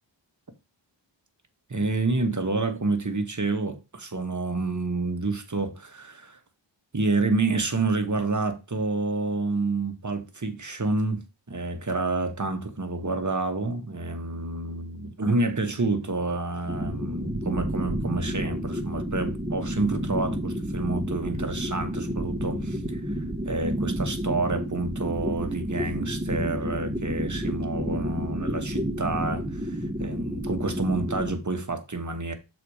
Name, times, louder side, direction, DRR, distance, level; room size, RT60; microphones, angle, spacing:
voice 1, 1.7-6.4 6.9-11.2 11.5-23.1 23.4-32.3, right 3 dB, 40° right, 1.2 m, -28 dB
sound 1, 16.7-31.3, equal, 10° right, 1.6 m, -30 dB
6.7 x 4.1 x 4.8 m
wide cardioid pair, 65°, 46 cm